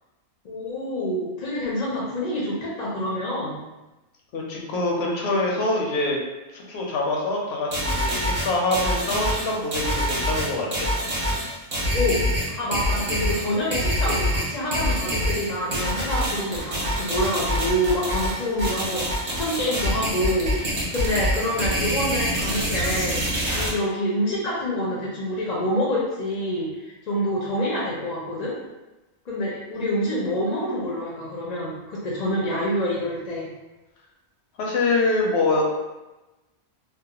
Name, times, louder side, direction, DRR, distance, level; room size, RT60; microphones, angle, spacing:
voice 1, 0.4-3.6 11.9-28.5 29.3-33.5, left 1 dB, 50° left, -5 dB, 0.5 m, -27 dB
voice 2, 4.3-6.2 6.5-10.9 34.6-35.7, left 2 dB, 75° left, -1 dB, 0.8 m, -25 dB
sound 1, 7.7-23.7, equal, 40° right, 0.7 m, -25 dB
2.3 x 2.0 x 2.8 m, 1.1 s
omnidirectional pair, 1.1 m